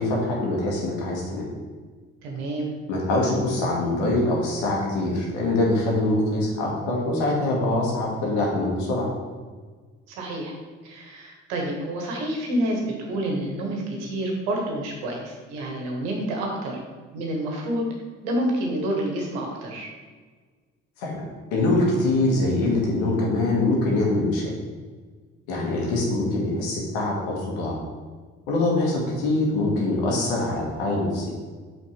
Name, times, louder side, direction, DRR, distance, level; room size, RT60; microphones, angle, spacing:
voice 1, 0.0-1.5 2.9-9.1 21.0-21.3 21.5-24.5 25.5-27.8 28.5-31.3, left 2 dB, 85° left, -3 dB, 1.8 m, -24 dB
voice 2, 2.2-2.7 10.1-10.5 10.8-16.8 17.1-17.8 18.2-19.9, right 1 dB, 85° right, 0 dB, 1.4 m, -28 dB
5.6 x 4.3 x 5.8 m, 1.5 s
hypercardioid pair, 55°, 33 cm